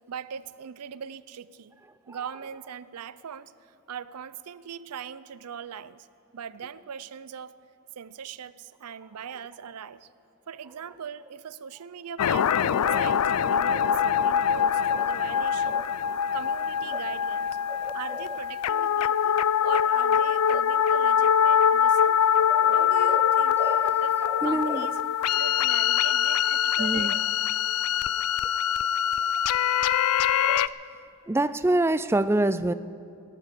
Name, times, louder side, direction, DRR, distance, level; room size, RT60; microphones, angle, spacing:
voice 1, 0.1-1.7 2.1-6.1 6.3-7.6 8.0-10.1 10.5-15.8 16.3-17.6 17.9-22.2 22.7-23.6 24.0-24.2 24.4-25.0 25.3-27.2, right 7 dB, 90° right, 17 dB, 0.5 m, -40 dB
sound 1, 12.2-30.7, left 8 dB, 85° left, 0.4 m, -23 dB
voice 2, 12.7-13.1 15.7-15.8 17.7-18.3 22.5-24.0 24.2-24.9 26.8-27.1 30.4-30.8 31.3-32.7, right 2 dB, 10° right, 14 dB, 0.3 m, -28 dB
19.0 x 11.0 x 6.8 m, 2.9 s
head